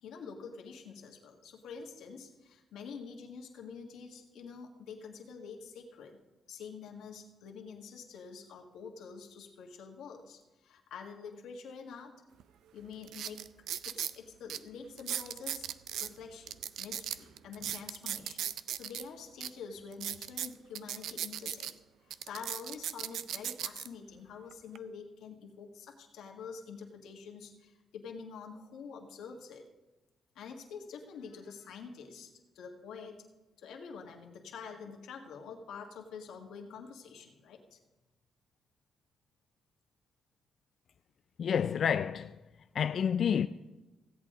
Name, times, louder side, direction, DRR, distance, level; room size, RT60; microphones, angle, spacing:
voice 1, 0.0-6.2 6.5-12.1 12.7-13.5 13.8-15.7 16.0-21.7 22.1-29.6 30.3-33.2 33.6-37.8, left 5 dB, 85° left, 1.6 m, -47 dB
sound 1, 12.4-12.5 13.0-14.2 14.5-14.6 15.0-16.1 16.5-19.0 19.4-19.5 19.9-21.7 22.1-23.9 24.5-24.8, right 10 dB, 85° right, 0.4 m, -37 dB
voice 2, 41.4-42.4 42.7-43.5, left 8 dB, 65° left, 0.3 m, -29 dB
16.0 x 8.4 x 3.8 m
cardioid pair, 85°, 0 cm